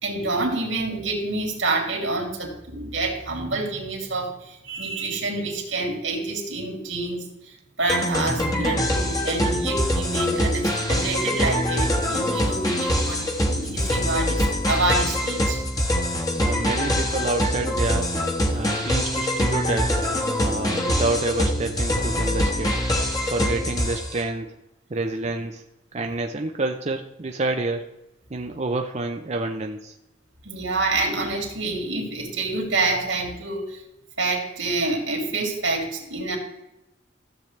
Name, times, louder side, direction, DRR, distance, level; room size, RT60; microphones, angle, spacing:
voice 1, 0.0-15.6 30.4-33.8 34.2-36.4, right 2 dB, 85° right, 2 dB, 2.7 m, -27 dB
sound 1, 7.9-24.2, equal, 20° left, 1.4 m, -24 dB
voice 2, 16.3-18.1 18.5-20.0 20.4-22.8 23.3-24.6 24.9-25.6 25.9-27.9 28.3-30.0, right 2 dB, 35° right, 4 dB, 0.6 m, -28 dB
13.5 x 7.6 x 3.3 m, 0.93 s
head